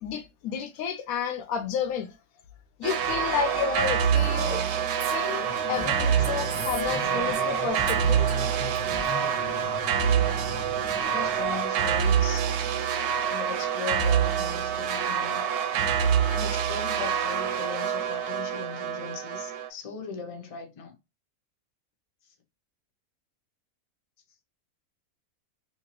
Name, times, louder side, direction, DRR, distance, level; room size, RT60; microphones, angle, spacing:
voice 1, 0.0-2.1 2.8-4.6 5.1-8.3, left 7 dB, 75° left, 1.0 m, -31 dB
sound 1, 2.8-19.7, right 8 dB, 85° right, 1.1 m, -26 dB
Female speech woman speaking, 4.2-7.6 7.9-9.7, right 7 dB, 65° right, 0.9 m, -41 dB
sound 2, 5.3-11.7, left 3 dB, 10° left, 1.0 m, -40 dB
voice 2, 10.8-12.5 13.3-15.4 16.3-21.0 22.2-22.3, left 5 dB, 35° left, 0.5 m, -39 dB
2.9 x 2.8 x 2.9 m
omnidirectional pair, 1.6 m